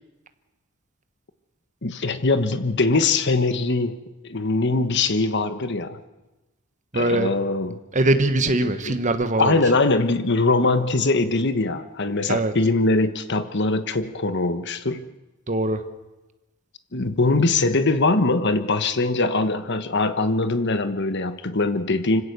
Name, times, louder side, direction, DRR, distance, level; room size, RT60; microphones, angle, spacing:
voice 1, 1.8-4.0 4.2-6.0 6.9-7.8 8.6-9.0 9.4-15.0 16.9-22.2, left 3 dB, 55° left, 10 dB, 1.3 m, -22 dB
voice 2, 6.9-7.3 7.9-9.6 12.3-12.5 15.5-15.8, right 2 dB, 35° right, 9 dB, 1.4 m, -22 dB
25.0 x 16.5 x 6.9 m, 1.1 s
head